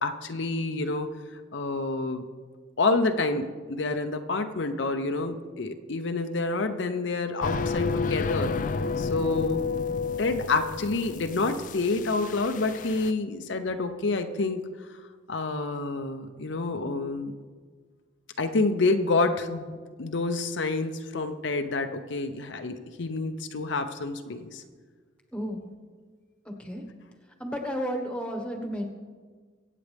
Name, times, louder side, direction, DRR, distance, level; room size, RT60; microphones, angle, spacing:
voice 1, 0.0-2.2 2.8-9.7 10.2-14.6 15.3-17.3 18.4-24.6, left 3 dB, 70° left, 7 dB, 0.7 m, -28 dB
sound 1, 7.4-13.1, left 4 dB, 40° left, 0.3 m, -31 dB
voice 2, 25.3-25.6 26.4-26.8 27.4-28.8, equal, 5° left, 3 dB, 1.3 m, -32 dB
23.5 x 8.5 x 3.5 m, 1.6 s
head